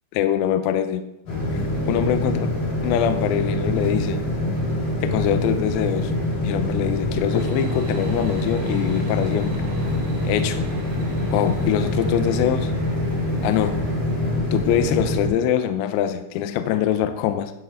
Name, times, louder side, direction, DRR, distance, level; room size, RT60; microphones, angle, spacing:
voice 1, 0.1-1.0 1.9-2.5 2.8-4.2 5.0-6.1 6.4-9.6 10.2-10.7 11.3-12.7 13.4-13.8 14.5-17.5, left 10 dB, 85° left, 9 dB, 2.6 m, -23 dB
sound 1, 1.3-15.3, left 1 dB, 50° left, 3.7 m, -25 dB
sound 2, 7.3-14.3, right 4 dB, 60° right, 1.9 m, -41 dB
11.5 x 6.1 x 5.1 m, 0.86 s
omnidirectional pair, 5.6 m